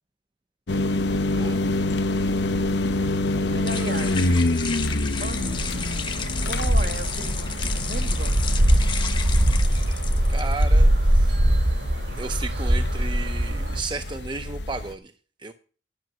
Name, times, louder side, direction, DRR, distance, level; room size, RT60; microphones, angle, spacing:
sound 1, 0.7-14.9, left 2 dB, 85° left, 0.9 m, -27 dB
sound 2, 3.1-10.6, left 6 dB, 25° left, 1.1 m, -35 dB
voice 1, 3.5-4.3 5.2-5.8 6.4-8.5, right 2 dB, 60° right, 1.5 m, -35 dB
sound 3, 5.3-13.8, right 1 dB, 85° right, 2.8 m, -22 dB
voice 2, 10.3-11.3 12.2-15.1 15.4-15.5, right 3 dB, 25° right, 0.6 m, -34 dB
10.5 x 6.5 x 5.9 m
head